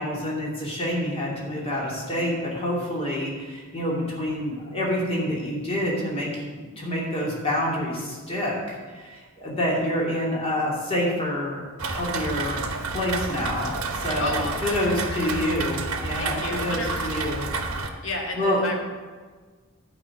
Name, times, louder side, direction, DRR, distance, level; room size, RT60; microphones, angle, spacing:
voice 1, 0.0-12.7 12.9-17.5 18.3-18.6, left 1 dB, 25° left, -4 dB, 2.7 m, -27 dB
Rain, 11.8-17.9, right 3 dB, 85° right, 1.1 m, -30 dB
voice 2, 14.2-15.5 16.2-17.3 18.0-18.8, left 2 dB, 65° left, 0 dB, 2.0 m, -32 dB
11.0 x 5.1 x 8.2 m, 1.4 s
head